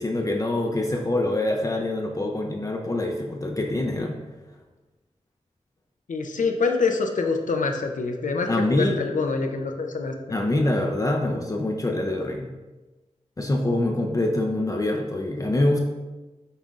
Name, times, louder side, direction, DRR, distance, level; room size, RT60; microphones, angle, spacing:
voice 1, 0.0-4.2 8.5-9.0 10.3-12.5 13.4-15.8, left 1 dB, 25° left, 1 dB, 0.4 m, -25 dB
voice 2, 6.1-10.1, left 4 dB, 85° left, 4 dB, 0.5 m, -25 dB
5.5 x 3.8 x 2.4 m, 1.2 s
wide cardioid pair, 85°, 13 cm